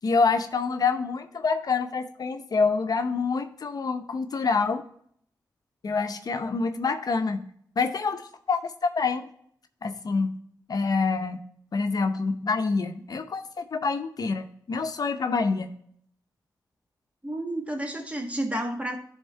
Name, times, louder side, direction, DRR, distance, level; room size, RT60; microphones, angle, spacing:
voice 1, 0.0-4.8 5.8-7.4 7.8-8.2 8.5-9.2 9.8-10.3 10.7-11.4 11.7-15.7, left 4 dB, 60° left, 7 dB, 0.7 m, -26 dB
voice 2, 17.2-19.0, right 1 dB, 20° right, 3 dB, 1.6 m, -31 dB
10.5 x 3.6 x 4.4 m, 0.63 s
cardioid pair, 45°, 7 cm